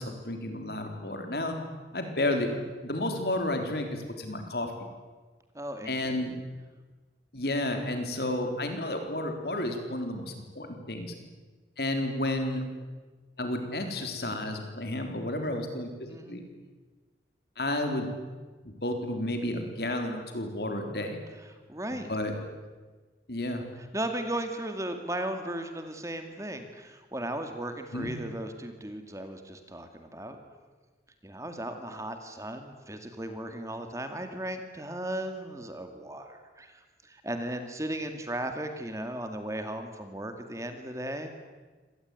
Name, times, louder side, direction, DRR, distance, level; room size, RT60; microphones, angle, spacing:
voice 1, 0.0-1.5 1.9-4.7 5.8-6.3 7.3-11.1 11.8-12.6 13.4-15.9 16.3-16.4 17.6-18.1 18.6-21.2 21.9-22.3 23.3-23.6 27.9-28.1, left 1 dB, 60° left, 5 dB, 4.1 m, -31 dB
voice 2, 5.6-5.9 6.2-6.3 16.1-16.4 21.7-22.1 23.9-30.4 31.2-41.3, right 1 dB, 15° right, 7 dB, 2.2 m, -36 dB
26.0 x 19.0 x 9.5 m, 1.3 s
head